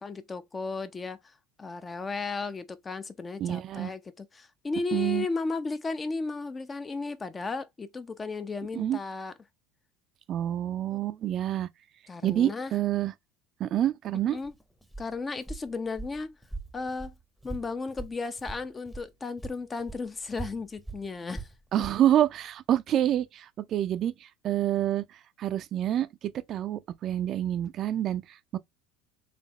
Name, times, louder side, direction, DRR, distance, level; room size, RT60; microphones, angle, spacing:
voice 1, 0.0-1.2 1.6-9.3 10.9-11.0 12.1-12.7 14.3-14.5 15.0-16.4 16.7-17.1 17.4-21.5 21.8-21.9, left 3 dB, 25° left, 0.7 m, -34 dB
voice 2, 3.4-3.9 4.9-5.3 8.7-9.0 10.3-11.7 12.2-13.1 13.6-14.4 21.7-28.6, right 11 dB, 50° right, 0.5 m, -27 dB
Walk footsteps, 14.3-19.1 19.4-22.0, right 2 dB, ahead, 0.9 m, -42 dB
4.1 x 3.4 x 3.0 m
hypercardioid pair, 80°, 0 cm